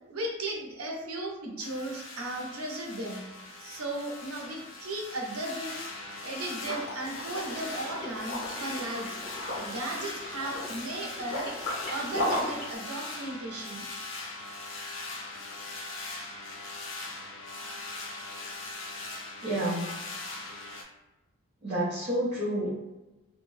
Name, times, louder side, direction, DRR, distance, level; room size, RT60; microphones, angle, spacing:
voice 1, 0.1-3.3 3.6-5.9 6.2-9.2 9.6-13.9, right 2 dB, 80° right, 0 dB, 0.7 m, -36 dB
sound 1, 1.6-20.8, left 2 dB, 60° left, 0.5 m, -40 dB
Liquid, 6.6-12.7, left 1 dB, 45° left, 0.9 m, -36 dB
voice 2, 19.4-19.9 21.6-22.7, right 1 dB, 35° right, -11 dB, 0.6 m, -29 dB
2.6 x 2.2 x 3.1 m, 1.1 s
head